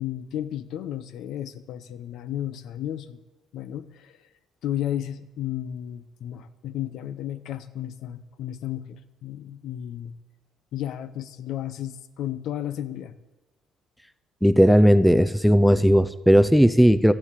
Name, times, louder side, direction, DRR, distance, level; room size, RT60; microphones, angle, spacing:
voice 1, 0.0-3.2 3.5-4.1 4.6-10.2 10.7-13.2, left 11 dB, 65° left, 13 dB, 0.8 m, -33 dB
voice 2, 14.4-17.1, equal, ahead, 13 dB, 0.4 m, -16 dB
13.0 x 10.0 x 8.3 m, 1.1 s
cardioid pair, 150°, 0 cm